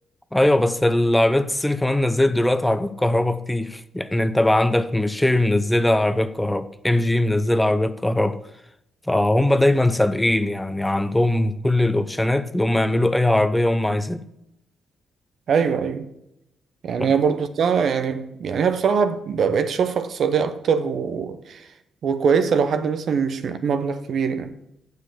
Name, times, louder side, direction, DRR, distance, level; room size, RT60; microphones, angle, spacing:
voice 1, 0.3-8.4 9.1-14.2 17.0-17.1, left 1 dB, 10° left, 0.7 m, -20 dB
voice 2, 15.5-16.1 16.8-21.6 22.0-24.5, right 6 dB, 65° right, 0.8 m, -22 dB
7.4 x 6.6 x 6.7 m
supercardioid pair, 50°, 0 cm